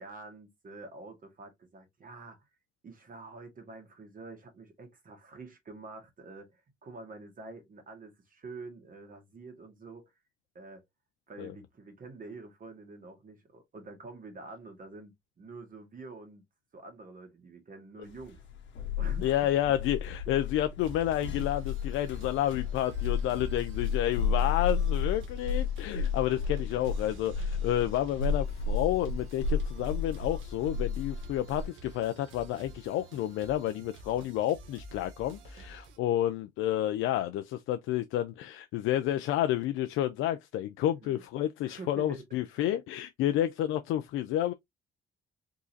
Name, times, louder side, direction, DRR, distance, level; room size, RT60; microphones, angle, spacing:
voice 1, 0.0-2.4 2.8-10.1 10.5-10.8 11.3-16.4 16.7-18.4 19.0-19.7 20.3-20.4 23.0-23.4 41.0-41.2 41.7-42.2 42.5-42.7, right 3 dB, 45° right, 1.6 m, -47 dB
sound 1, 18.2-31.7, left 5 dB, 65° left, 1.1 m, -32 dB
voice 2, 19.2-44.5, left 12 dB, 90° left, 0.4 m, -30 dB
sound 2, 20.8-36.0, right 1 dB, 80° right, 0.9 m, -50 dB
3.7 x 2.8 x 2.6 m
cardioid pair, 90°, 20 cm